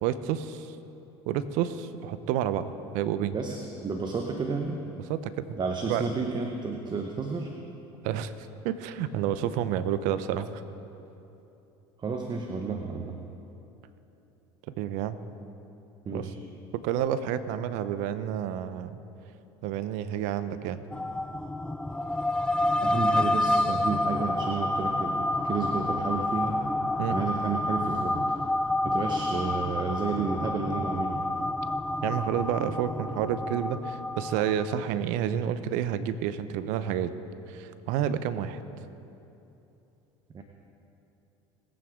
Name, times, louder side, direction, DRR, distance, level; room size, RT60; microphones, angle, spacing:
voice 1, 0.0-0.8 1.3-3.4 5.1-5.6 5.8-6.0 8.0-8.3 8.6-10.6 14.8-15.2 16.1-16.3 16.7-19.0 19.6-20.8 27.0-27.2 32.0-37.1 37.5-38.6, right 10 dB, 65° right, 13 dB, 0.7 m, -29 dB
voice 2, 3.3-4.8 5.6-7.5 12.0-13.2 16.0-16.4 22.8-26.6 27.1-28.4 28.8-31.3 40.3-40.4, right 4 dB, 30° right, 3 dB, 1.1 m, -31 dB
sound 1, 20.9-34.9, left 1 dB, 5° left, 0.4 m, -29 dB
20.5 x 8.8 x 3.7 m, 2.9 s
hypercardioid pair, 75°, 14 cm